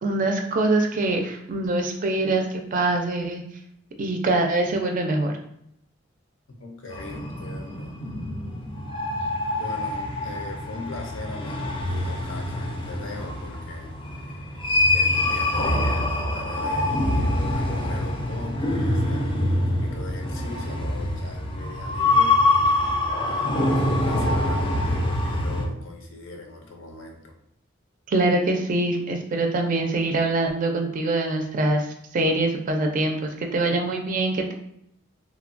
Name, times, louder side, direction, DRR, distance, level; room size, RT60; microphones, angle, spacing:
voice 1, 0.0-3.4 4.0-5.3 28.1-31.9 32.1-34.5, right 2 dB, 40° right, 3 dB, 0.4 m, -24 dB
voice 2, 6.6-7.9 9.2-27.3, left 2 dB, 70° left, 2 dB, 0.6 m, -40 dB
sound 1, 6.9-25.7, left 2 dB, 25° left, 0.4 m, -25 dB
3.1 x 2.1 x 2.4 m, 0.74 s
head